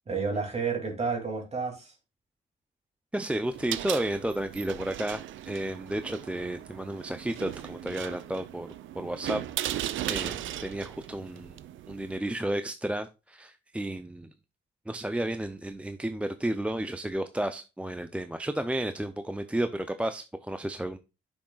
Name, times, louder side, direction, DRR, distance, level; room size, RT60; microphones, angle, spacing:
voice 1, 0.1-1.9, right 4 dB, 30° right, 2.7 m, -30 dB
voice 2, 3.1-11.6 11.9-14.3 14.9-21.0, right 1 dB, 5° right, 0.5 m, -32 dB
sound 1, 3.4-12.2, right 12 dB, 75° right, 0.6 m, -37 dB
8.3 x 6.3 x 2.3 m
cardioid pair, 90°, 20 cm